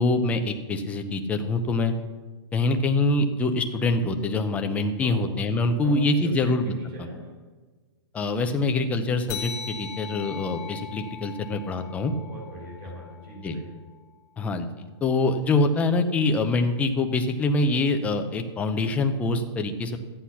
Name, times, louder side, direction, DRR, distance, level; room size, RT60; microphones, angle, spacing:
voice 1, 0.0-1.9 2.5-6.6 8.1-12.1 13.4-13.6 14.4-14.7 15.0-20.0, left 2 dB, 10° left, 5 dB, 0.7 m, -24 dB
voice 2, 5.8-7.3 12.1-13.7, right 1 dB, 25° right, -2 dB, 4.1 m, -42 dB
sound 1, 9.3-14.2, left 7 dB, 25° left, 1.1 m, -40 dB
13.5 x 8.2 x 5.8 m, 1.3 s
hypercardioid pair, 160°, 15 cm